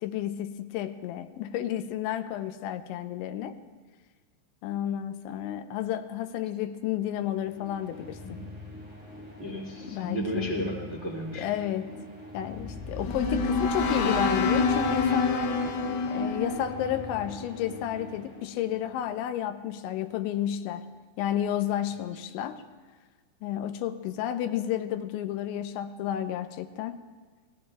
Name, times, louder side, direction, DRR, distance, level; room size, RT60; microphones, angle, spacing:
voice 1, 0.0-3.6 4.6-8.2 9.9-10.6 11.3-11.9 12.3-15.6 16.1-20.9 21.2-22.6 23.4-27.0, left 11 dB, 90° left, 9 dB, 3.1 m, -31 dB
sound 1, 7.2-19.0, left 1 dB, ahead, 5.8 m, -45 dB
voice 2, 9.4-11.5, equal, 90° right, -1 dB, 0.6 m, -33 dB
sound 2, 12.5-17.8, left 4 dB, 65° left, 2.9 m, -28 dB
28.0 x 20.0 x 2.3 m, 1.5 s
omnidirectional pair, 5.3 m